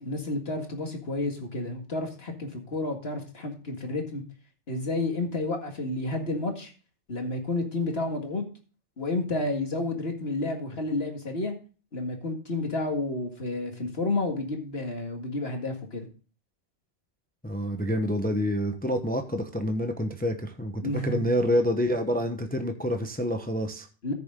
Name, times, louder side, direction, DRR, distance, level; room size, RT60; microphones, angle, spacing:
voice 1, 0.0-4.2 4.7-6.7 7.1-8.4 9.0-11.5 11.9-16.1 20.8-21.2 24.0-24.1, left 2 dB, 60° left, 3 dB, 2.2 m, -30 dB
voice 2, 17.4-23.9, equal, 10° left, 6 dB, 0.9 m, -27 dB
14.0 x 6.8 x 3.7 m, 0.35 s
omnidirectional pair, 1.2 m